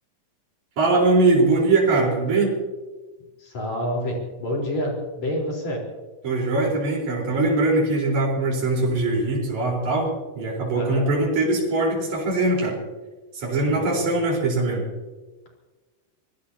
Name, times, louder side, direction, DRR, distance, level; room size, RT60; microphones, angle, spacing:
voice 1, 0.8-2.5 6.2-12.8 13.3-14.8, right 2 dB, 55° right, -3 dB, 5.6 m, -21 dB
voice 2, 3.4-5.8 10.7-11.1 13.5-14.1, equal, 50° left, -1 dB, 5.4 m, -28 dB
25.5 x 19.5 x 2.9 m, 1.2 s
omnidirectional pair, 4.0 m